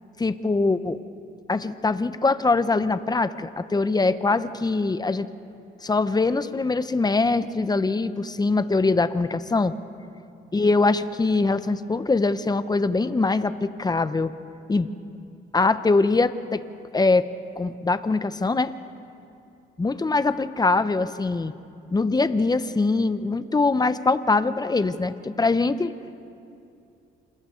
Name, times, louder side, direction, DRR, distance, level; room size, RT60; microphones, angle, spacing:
voice 1, 0.2-1.0 1.5-5.3 5.8-9.7 10.5-14.3 14.7-14.9 15.5-16.6 16.9-17.3 17.6-18.7 19.8-21.5 21.9-25.9, left 3 dB, 20° left, 12 dB, 0.8 m, -23 dB
28.5 x 27.5 x 3.9 m, 2.6 s
cardioid pair, 90°, 20 cm